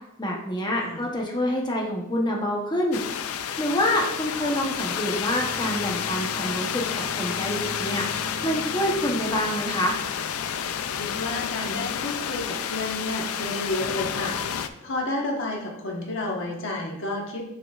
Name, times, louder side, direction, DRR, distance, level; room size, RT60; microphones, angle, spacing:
voice 1, 0.2-3.0 3.6-9.9, left 1 dB, 20° left, -1 dB, 0.9 m, -27 dB
sound 1, 2.9-14.7, left 8 dB, 85° left, 0.4 m, -30 dB
sound 2, 5.3-11.9, right 1 dB, 60° right, 1.4 m, -42 dB
voice 2, 10.9-17.5, left 2 dB, 65° left, 0 dB, 1.3 m, -31 dB
6.5 x 6.1 x 2.4 m, 0.86 s
head